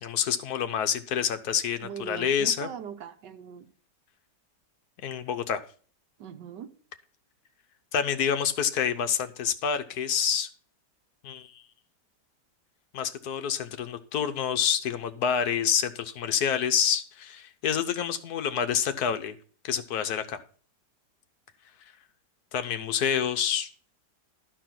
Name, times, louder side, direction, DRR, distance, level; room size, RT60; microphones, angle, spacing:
voice 1, 0.0-2.7 5.0-5.6 7.9-10.5 11.2-11.6 12.9-19.4 19.6-20.4 22.5-23.7, left 8 dB, 65° left, 9 dB, 1.3 m, -27 dB
voice 2, 1.8-3.7 6.2-6.7, right 8 dB, 85° right, 7 dB, 1.6 m, -40 dB
12.5 x 4.6 x 5.9 m, 0.43 s
omnidirectional pair, 1.8 m